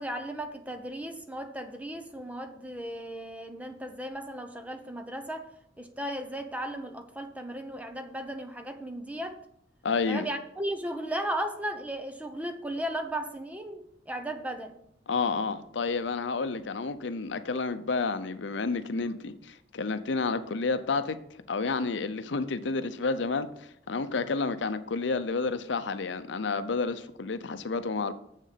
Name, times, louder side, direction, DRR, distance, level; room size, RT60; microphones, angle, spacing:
voice 1, 0.0-5.5 5.8-9.4 10.1-14.8, right 1 dB, 10° right, 0.8 m, -36 dB
voice 2, 9.8-10.3 15.1-21.2 21.5-23.5 23.9-28.1, left 4 dB, 75° left, 0.6 m, -30 dB
7.4 x 6.4 x 5.8 m
head